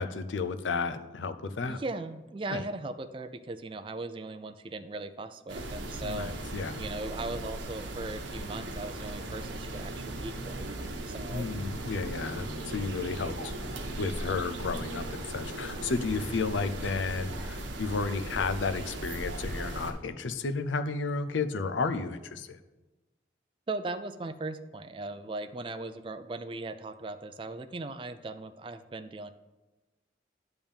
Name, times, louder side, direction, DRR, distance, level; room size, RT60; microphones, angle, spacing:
voice 1, 0.0-1.8 2.5-2.6 6.0-6.8 11.3-13.5 14.0-22.6, left 4 dB, 90° left, 10 dB, 0.6 m, -32 dB
voice 2, 1.7-11.5 23.7-29.3, right 2 dB, 25° right, 9 dB, 0.4 m, -38 dB
sound 1, 5.5-19.9, right 1 dB, 85° right, 1.0 m, -38 dB
10.5 x 3.5 x 7.1 m, 1.1 s
head